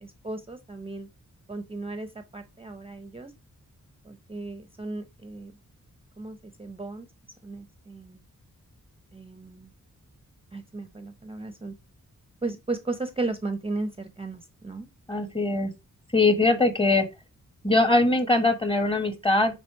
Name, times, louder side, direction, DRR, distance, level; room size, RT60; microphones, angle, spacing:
voice 1, 0.0-1.1 1.5-2.1 2.3-3.3 4.1-5.5 6.2-7.1 7.4-8.2 9.1-9.7 10.5-11.7 12.4-14.9, right 3 dB, 20° right, 0.6 m, -35 dB
voice 2, 15.1-15.7 16.1-17.1 17.6-19.6, left 2 dB, 15° left, 1.3 m, -22 dB
9.7 x 3.3 x 4.6 m
wide cardioid pair, 155°, 32 cm